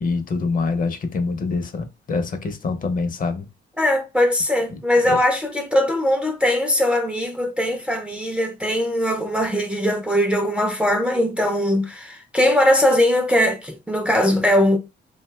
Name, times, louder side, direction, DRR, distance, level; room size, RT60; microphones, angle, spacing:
voice 1, 0.0-3.4, left 4 dB, 45° left, 0.6 m, -25 dB
voice 2, 3.8-14.8, left 1 dB, 5° right, 0.4 m, -20 dB
2.6 x 2.2 x 3.2 m
cardioid pair, 90°, 20 cm